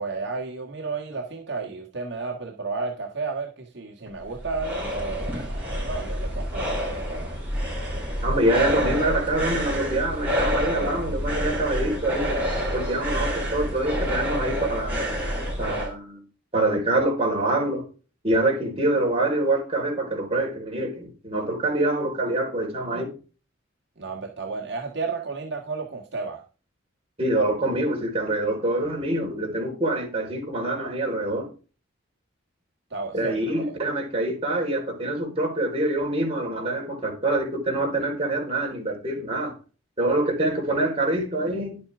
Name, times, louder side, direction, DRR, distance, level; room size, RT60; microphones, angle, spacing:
voice 1, 0.0-7.3 24.0-26.4 32.9-33.3 33.6-33.8, right 4 dB, 55° right, 1.8 m, -32 dB
sound 1, 4.1-15.9, equal, 5° right, 5.9 m, -28 dB
voice 2, 8.2-12.4 12.7-15.0 15.6-16.2 16.5-17.9 18.2-23.1 27.2-31.5 33.1-39.5 40.0-41.8, right 1 dB, 30° right, 4.3 m, -25 dB
11.0 x 8.6 x 3.5 m
head